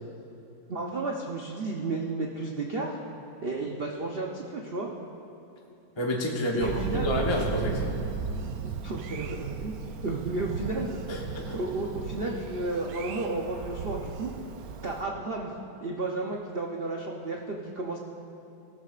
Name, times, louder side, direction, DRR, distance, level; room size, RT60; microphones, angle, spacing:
voice 1, 0.7-3.0 3.4-4.9 6.5-7.1 8.6-9.7 10.0-10.9 11.5-14.3 14.8-15.5 15.8-18.0, right 2 dB, 90° right, -1 dB, 0.5 m, -32 dB
voice 2, 6.0-7.9 11.1-11.6, left 1 dB, 25° left, -2 dB, 0.6 m, -29 dB
Thunder, 6.6-15.0, right 6 dB, 75° right, 0.8 m, -35 dB
17.5 x 13.0 x 2.5 m, 2.7 s
omnidirectional pair, 2.2 m